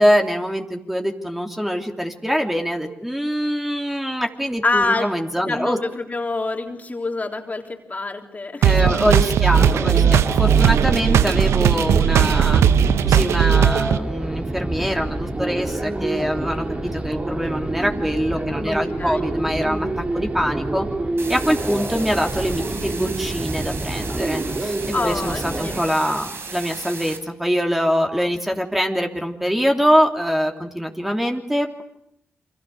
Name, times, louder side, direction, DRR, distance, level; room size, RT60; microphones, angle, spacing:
voice 1, 0.0-5.8 8.6-12.6 13.0-19.9 20.1-20.9 21.3-24.8 25.0-31.8, equal, 5° right, 3 dB, 3.2 m, -23 dB
voice 2, 4.6-5.1 5.5-7.6 7.9-9.0 9.2-9.3 18.7-18.8 19.0-19.3 24.9-25.7, left 3 dB, 35° left, 4 dB, 3.6 m, -26 dB
sound 1, 8.6-14.0, right 8 dB, 70° right, 0.9 m, -17 dB
sound 2, 9.5-25.8, right 2 dB, 25° right, 3.6 m, -27 dB
sound 3, 21.2-27.2, right 4 dB, 55° right, 4.1 m, -35 dB
29.0 x 24.5 x 6.7 m, 0.76 s
hypercardioid pair, 40°, 5 cm